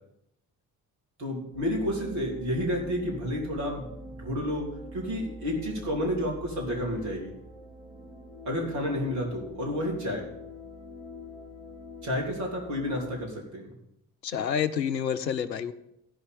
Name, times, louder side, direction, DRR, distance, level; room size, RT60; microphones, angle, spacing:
voice 1, 1.2-3.9 4.2-4.6 4.9-7.4 8.4-10.3 12.0-13.7, equal, 65° right, -2 dB, 3.3 m, -30 dB
sound 1, 1.5-13.2, left 1 dB, 5° right, 3.3 m, -45 dB
voice 2, 14.2-15.7, left 8 dB, 90° left, 12 dB, 0.6 m, -28 dB
13.0 x 5.6 x 8.4 m, 0.81 s
figure-of-eight pair, 45°, 49 cm